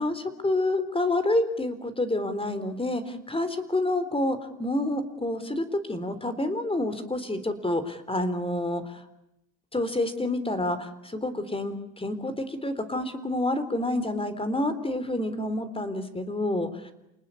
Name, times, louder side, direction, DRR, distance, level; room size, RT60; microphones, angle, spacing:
voice 1, 0.0-9.0 9.7-16.9, left 1 dB, 15° left, 12 dB, 3.7 m, -28 dB
28.5 x 19.5 x 9.8 m, 0.88 s
supercardioid pair, 80°, 35 cm